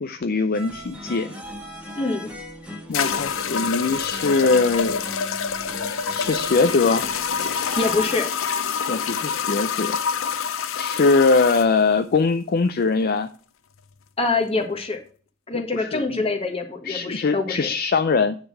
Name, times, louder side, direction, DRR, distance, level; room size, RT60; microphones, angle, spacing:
voice 1, 0.0-1.3 2.9-5.0 6.1-7.1 8.9-10.0 10.8-13.3 15.5-16.2 16.8-18.4, left 4 dB, 50° left, 9 dB, 0.5 m, -21 dB
sound 1, 0.5-8.2, equal, 5° right, 1.5 m, -38 dB
voice 2, 1.9-2.3 7.7-8.3 14.2-15.0 15.5-17.7, left 3 dB, 30° left, 2 dB, 1.6 m, -25 dB
sound 2, 2.1-2.2 2.9-11.7, left 6 dB, 90° left, 0.6 m, -27 dB
9.6 x 3.9 x 6.4 m, 0.41 s
head